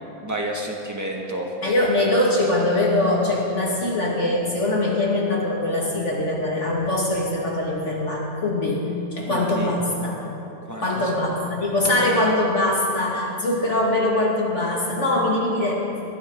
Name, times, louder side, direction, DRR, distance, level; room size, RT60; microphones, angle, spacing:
voice 1, 0.2-1.5 9.3-9.7 10.6-11.1, right 1 dB, 10° right, -1 dB, 1.9 m, -30 dB
voice 2, 1.6-10.2 10.8-15.9, left 1 dB, 55° left, -3 dB, 2.5 m, -22 dB
21.5 x 15.5 x 4.0 m, 2.8 s
omnidirectional pair, 1.5 m